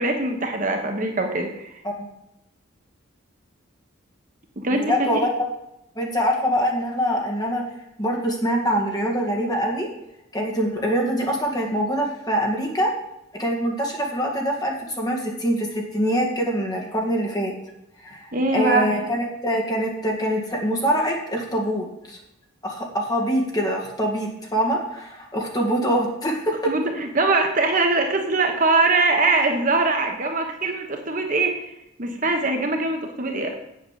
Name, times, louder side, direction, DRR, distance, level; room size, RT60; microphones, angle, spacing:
voice 1, 0.0-1.8 4.6-5.2 18.3-18.9 26.7-31.6 32.0-33.5, right 3 dB, 40° right, 3 dB, 1.1 m, -22 dB
voice 2, 4.7-5.3 6.0-7.7 8.0-9.9 10.3-12.9 13.4-17.5 18.0-22.2 22.6-26.7, equal, 20° left, 0 dB, 2.0 m, -24 dB
8.0 x 7.9 x 7.4 m, 0.84 s
head